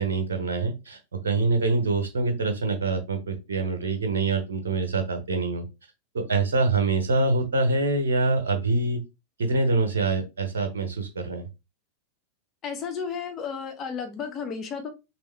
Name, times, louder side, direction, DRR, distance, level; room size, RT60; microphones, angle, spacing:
voice 1, 0.0-5.6 6.1-9.0 9.4-11.5, right 3 dB, 65° right, 6 dB, 0.9 m, -25 dB
voice 2, 12.6-14.9, left 6 dB, 30° left, 6 dB, 0.7 m, -33 dB
3.4 x 3.0 x 3.2 m, 0.26 s
figure-of-eight pair, 90°, 0 cm